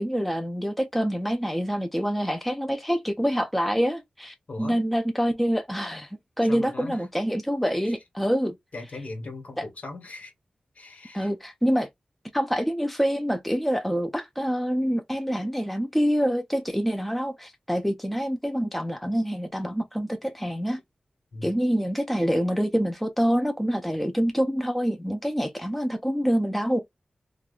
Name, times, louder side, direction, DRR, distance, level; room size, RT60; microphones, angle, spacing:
voice 1, 0.0-6.1 6.4-8.5 9.6-9.7 11.1-11.9 12.3-20.8 21.4-26.8, equal, 5° left, 0.5 m, -26 dB
voice 2, 4.5-4.8 6.5-7.0 7.8-7.9 8.7-10.3 10.7-11.3 21.3-21.5, left 2 dB, 60° left, 1.3 m, -39 dB
3.2 x 2.3 x 2.4 m
cardioid pair, 50°, 3 cm